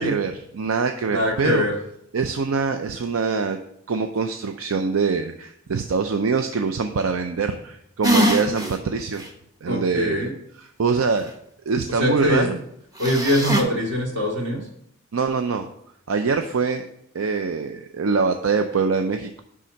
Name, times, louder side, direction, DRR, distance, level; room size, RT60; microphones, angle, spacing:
voice 1, 0.0-1.6 2.1-3.6 3.9-9.2 9.6-10.3 10.8-11.3 11.7-12.6 15.1-15.7 16.1-16.8 17.1-19.4, right 5 dB, 80° right, 7 dB, 0.5 m, -24 dB
voice 2, 1.1-1.8 9.7-10.3 12.0-12.5 13.0-14.7, equal, 60° right, -1 dB, 2.3 m, -22 dB
sound 1, 8.0-8.7 9.2-9.3 13.0-13.6, equal, 15° right, 1.0 m, -21 dB
10.0 x 3.7 x 5.2 m, 0.74 s
head